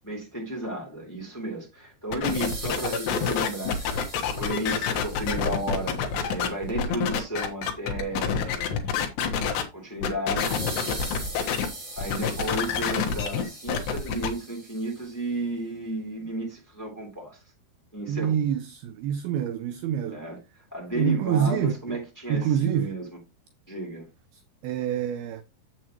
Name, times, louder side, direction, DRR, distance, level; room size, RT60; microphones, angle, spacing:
voice 1, 0.0-6.0 6.3-8.9 9.7-10.7 12.0-17.4 17.9-18.4 20.1-20.4 20.7-23.0 23.7-24.0, right 1 dB, 5° left, 2.3 m, -33 dB
sound 1, 2.1-9.6 10.0-11.7 12.0-14.3, left 7 dB, 80° left, 3.3 m, -27 dB
sound 2, 2.3-6.1 10.4-15.1, right 1 dB, 20° right, 6.0 m, -40 dB
voice 2, 18.1-20.3 20.9-22.0 22.3-23.0 24.3-25.4, right 9 dB, 80° right, 2.2 m, -27 dB
7.6 x 7.4 x 3.0 m
omnidirectional pair, 4.9 m